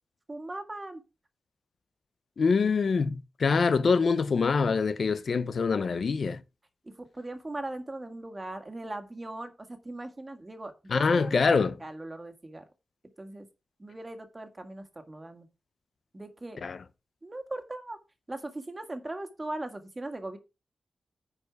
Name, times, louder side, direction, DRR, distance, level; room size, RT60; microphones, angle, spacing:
voice 1, 0.3-1.0 7.0-11.5 11.8-12.6 13.2-13.5 13.8-15.5 16.1-16.6 17.2-18.0 18.3-20.4, right 2 dB, 25° right, 1.8 m, -39 dB
voice 2, 2.4-6.4 10.9-11.8 16.6-16.8, left 5 dB, 65° left, 0.7 m, -25 dB
9.9 x 4.9 x 4.7 m
cardioid pair, 75°, 0 cm